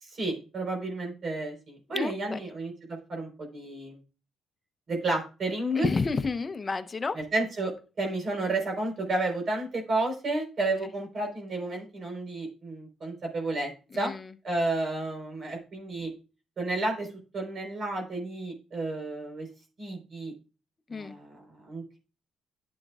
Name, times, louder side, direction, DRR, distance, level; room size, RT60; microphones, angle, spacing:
voice 1, 0.0-4.0 4.9-5.9 7.1-13.7 14.0-14.1 14.4-16.1 16.6-17.1 17.3-19.5 19.8-20.3 20.9-22.0, right 2 dB, 50° right, 2 dB, 4.1 m, -31 dB
voice 2, 1.9-2.4 5.8-7.2 13.9-14.3 20.9-21.1, left 4 dB, 30° left, 11 dB, 0.7 m, -30 dB
11.5 x 7.9 x 2.4 m, 0.33 s
cardioid pair, 90°, 0 cm